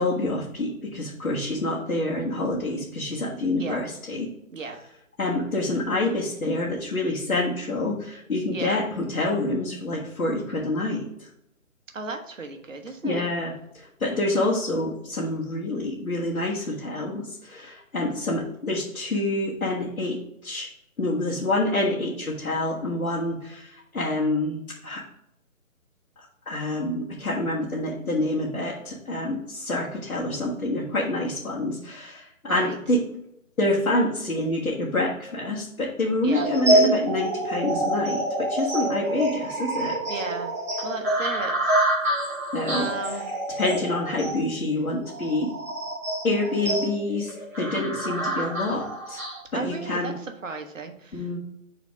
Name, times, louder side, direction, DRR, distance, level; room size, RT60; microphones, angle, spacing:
voice 1, 0.0-4.3 5.2-11.3 13.0-20.7 21.0-25.0 26.4-33.0 33.6-40.0 42.5-43.2 43.6-45.5 46.2-49.2 49.5-50.1 51.1-51.4, left 2 dB, 80° left, -4 dB, 1.7 m, -27 dB
voice 2, 8.5-8.8 11.9-13.3 32.5-32.8 36.2-36.5 40.1-40.5 40.8-41.7 42.7-43.3 49.5-50.1 50.4-51.4, right 4 dB, 65° right, 6 dB, 1.2 m, -34 dB
sound 1, 36.3-49.4, right 1 dB, 10° right, 0.8 m, -27 dB
5.1 x 4.1 x 5.0 m, 0.79 s
figure-of-eight pair, 155°, 42 cm